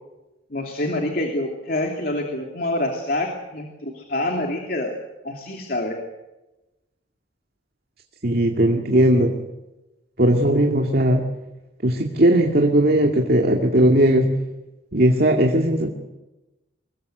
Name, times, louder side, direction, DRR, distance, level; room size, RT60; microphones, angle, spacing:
voice 1, 0.5-5.0 5.2-6.0, left 1 dB, 50° left, 3 dB, 2.9 m, -26 dB
voice 2, 8.2-9.3 10.2-11.2 11.8-14.3 14.9-15.9, right 1 dB, 55° right, 2 dB, 2.2 m, -18 dB
25.5 x 22.0 x 8.0 m, 1.0 s
head